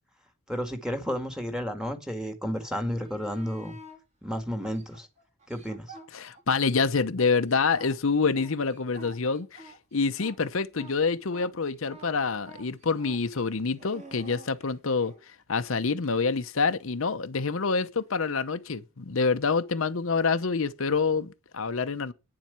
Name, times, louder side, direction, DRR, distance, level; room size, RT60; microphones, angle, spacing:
voice 1, 0.5-3.8 4.2-5.1 5.5-5.9, equal, 5° right, 1.7 m, -32 dB
sound 1, 2.8-4.0 4.6-6.7 7.0-15.2 18.0-18.1, right 1 dB, 35° right, 2.8 m, -49 dB
voice 2, 6.1-9.6 9.9-15.1 15.5-22.1, left 4 dB, 70° left, 0.8 m, -27 dB
9.7 x 7.5 x 6.7 m
head